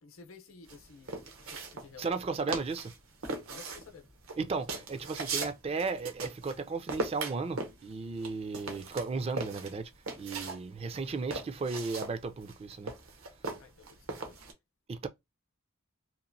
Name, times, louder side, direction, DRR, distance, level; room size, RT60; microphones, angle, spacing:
voice 1, 0.0-2.2 3.5-4.1 4.7-4.8 13.6-14.5, left 4 dB, 70° left, 0.7 m, -53 dB
sound 1, 0.7-2.2 2.5-3.0 3.2-6.6 6.9-10.6 10.9-14.5, right 3 dB, 80° right, 0.9 m, -38 dB
voice 2, 2.0-2.9 4.4-9.9 10.2-12.9 14.9-15.1, right 4 dB, 30° right, 0.3 m, -35 dB
2.9 x 2.4 x 2.5 m
head